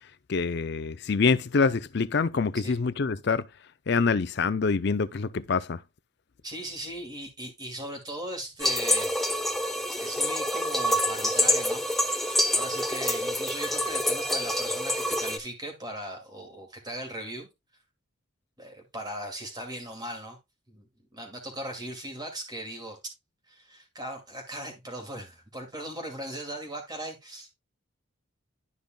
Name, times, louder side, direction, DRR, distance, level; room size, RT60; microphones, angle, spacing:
voice 1, 0.3-3.5 3.9-5.8, left 4 dB, 55° left, 0.5 m, -25 dB
voice 2, 6.4-9.2 10.0-11.9 12.3-17.5 18.6-20.4 20.7-20.9 21.1-23.0 23.5-27.5, right 1 dB, 20° right, 2.4 m, -38 dB
sound 1, 8.6-15.4, left 1 dB, ahead, 0.8 m, -27 dB
12.0 x 5.3 x 2.3 m
head